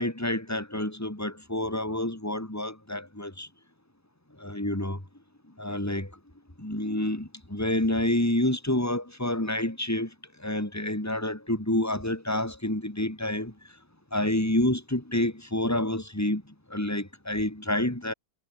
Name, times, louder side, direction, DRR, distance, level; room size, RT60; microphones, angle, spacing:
voice 1, 0.0-3.5 4.4-5.0 5.6-6.1 6.6-10.1 10.4-13.5 14.1-18.1, left 1 dB, 10° left, 3.6 m, -28 dB
omnidirectional pair, 2.0 m